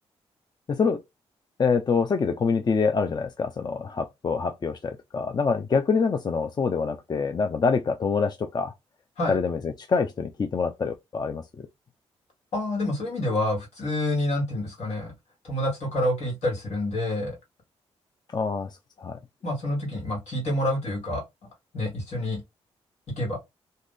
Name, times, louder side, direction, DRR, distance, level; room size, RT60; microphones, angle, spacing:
voice 1, 0.7-1.0 1.6-8.7 9.3-11.4 18.3-18.7 19.0-19.2, left 5 dB, 35° left, 0.5 m, -25 dB
voice 2, 12.5-15.1 15.4-17.4 19.4-21.2 21.7-22.4 23.2-23.4, left 1 dB, 70° left, 1.7 m, -27 dB
2.6 x 2.5 x 3.6 m
supercardioid pair, 55°, 12 cm